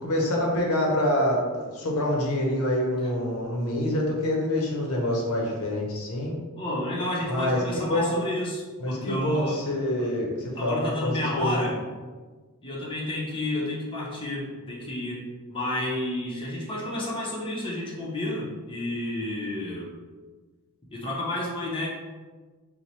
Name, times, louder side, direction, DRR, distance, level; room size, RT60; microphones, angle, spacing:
voice 1, 0.0-6.3 7.3-8.2 8.8-11.6, left 1 dB, 75° left, 0 dB, 0.7 m, -26 dB
voice 2, 6.6-9.6 10.0-10.1 10.5-11.8 12.6-19.9 20.9-21.9, left 1 dB, 25° left, -4 dB, 0.6 m, -31 dB
3.0 x 2.1 x 4.1 m, 1.3 s
head